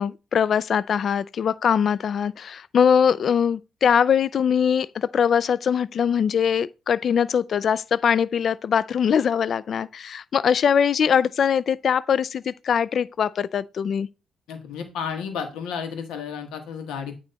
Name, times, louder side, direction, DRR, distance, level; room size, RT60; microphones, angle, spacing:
voice 1, 0.0-14.1, left 7 dB, 55° left, 0.3 m, -22 dB
voice 2, 14.5-17.1, left 6 dB, 90° left, 1.5 m, -32 dB
8.8 x 3.0 x 4.1 m
cardioid pair, 90°, 0 cm